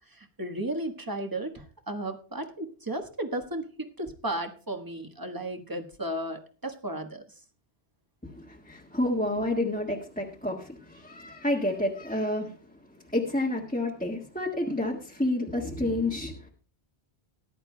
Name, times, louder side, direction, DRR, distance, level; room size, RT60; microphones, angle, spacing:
voice 1, 0.1-7.2, right 1 dB, 20° right, 5 dB, 1.4 m, -34 dB
voice 2, 8.2-12.5 13.1-16.5, left 1 dB, 5° left, -3 dB, 1.6 m, -29 dB
19.5 x 11.0 x 2.3 m, 0.38 s
omnidirectional pair, 1.1 m